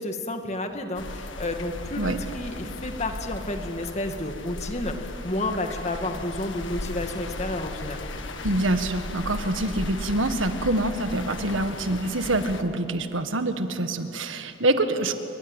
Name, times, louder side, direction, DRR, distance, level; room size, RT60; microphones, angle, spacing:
voice 1, 0.0-8.0, left 1 dB, 35° left, 5 dB, 2.0 m, -31 dB
sound 1, 0.9-12.6, left 2 dB, 75° left, 1.7 m, -36 dB
voice 2, 8.4-15.2, right 2 dB, 85° right, 8 dB, 1.8 m, -25 dB
28.0 x 23.5 x 9.0 m, 2.9 s
head